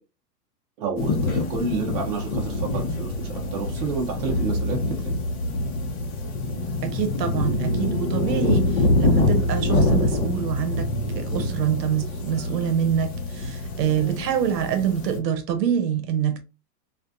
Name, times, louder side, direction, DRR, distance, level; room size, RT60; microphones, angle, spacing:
voice 1, 0.8-5.1, right 4 dB, 25° right, 0.5 m, -30 dB
Denver Sculpture Scottish Cow, 1.0-15.2, left 2 dB, 55° left, 0.9 m, -25 dB
voice 2, 6.8-8.7 9.0-10.9 11.2-16.4, right 9 dB, 75° right, 0.7 m, -25 dB
2.5 x 2.2 x 2.5 m
hypercardioid pair, 135°, 50 cm